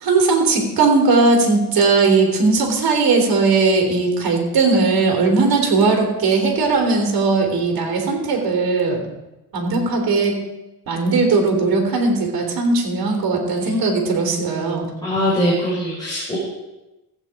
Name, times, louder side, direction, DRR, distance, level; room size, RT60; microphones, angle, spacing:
voice 1, 0.0-9.0 9.5-10.4 10.9-14.9, right 3 dB, 70° right, 2 dB, 3.3 m, -18 dB
voice 2, 15.0-16.4, equal, 10° left, -7 dB, 3.9 m, -21 dB
15.0 x 8.7 x 5.0 m, 1.0 s
cardioid pair, 115°, 37 cm